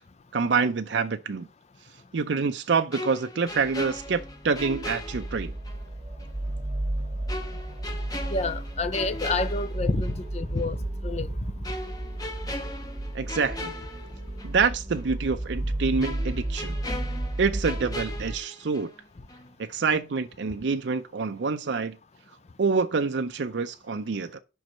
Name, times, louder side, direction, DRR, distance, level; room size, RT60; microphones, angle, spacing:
voice 1, 0.3-1.5 2.1-5.5 13.1-13.7 14.4-16.8 17.4-18.9 19.6-22.0 22.6-24.4, right 5 dB, 70° right, 0.5 m, -26 dB
sound 1, 2.9-5.9 6.2-6.3 7.3-10.2 10.6-10.8 11.6-14.6 14.9-15.1 16.0-19.0 19.3-19.5, left 2 dB, 20° left, 1.1 m, -39 dB
sound 2, 3.6-18.4, right 1 dB, 20° right, 1.4 m, -33 dB
voice 2, 8.3-10.8 11.0-11.3, left 3 dB, 35° left, 0.5 m, -28 dB
5.3 x 4.6 x 6.2 m
head